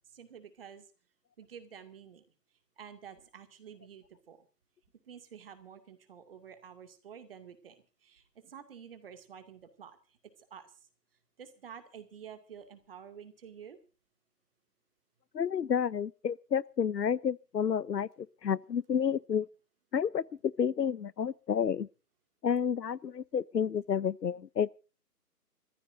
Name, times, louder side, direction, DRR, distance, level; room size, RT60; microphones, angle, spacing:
voice 1, 0.1-0.9 1.4-2.2 2.8-4.4 5.0-10.7 11.4-13.8, right 8 dB, 35° right, 2.3 m, -50 dB
voice 2, 15.3-19.5 19.9-21.9 22.4-24.7, left 7 dB, 85° left, 0.8 m, -30 dB
28.0 x 15.0 x 2.6 m
figure-of-eight pair, 155°, 48 cm